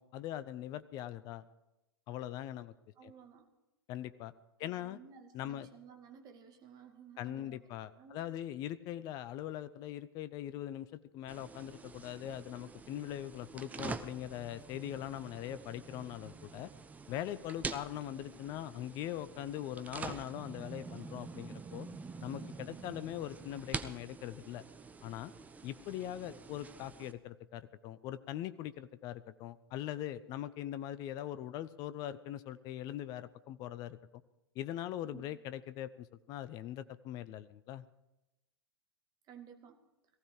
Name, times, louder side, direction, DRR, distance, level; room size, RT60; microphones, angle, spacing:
voice 1, 0.0-1.4 2.1-2.7 3.0-3.1 3.9-4.3 4.6-5.0 5.3-5.7 7.2-16.7 17.1-21.9 22.2-24.6 25.0-25.3 25.6-34.0 34.5-37.8, left 12 dB, 30° left, 14 dB, 0.7 m, -41 dB
voice 2, 3.0-3.5 4.6-7.6 7.9-8.2 35.1-35.3 39.3-39.8, right 7 dB, 30° right, 5 dB, 2.5 m, -55 dB
sound 1, 11.3-27.1, right 4 dB, 10° right, 1.0 m, -46 dB
18.5 x 15.5 x 4.8 m, 0.97 s
figure-of-eight pair, 100°, 12 cm